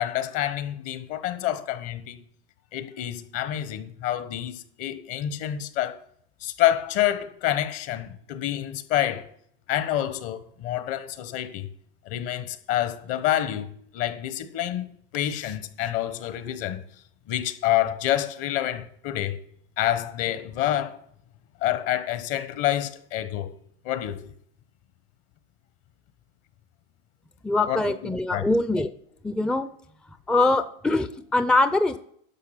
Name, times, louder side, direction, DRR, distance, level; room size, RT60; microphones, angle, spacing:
voice 1, 0.0-2.2 2.7-6.0 6.4-9.3 9.7-11.7 12.1-16.8 17.3-19.4 19.8-21.0 21.6-23.5 23.8-24.3 27.7-28.4, left 12 dB, 55° left, 1.2 m, -28 dB
voice 2, 27.4-28.9 29.2-29.7 30.3-32.0, left 2 dB, 5° left, 0.4 m, -23 dB
11.0 x 6.3 x 5.8 m
hypercardioid pair, 110°, 29 cm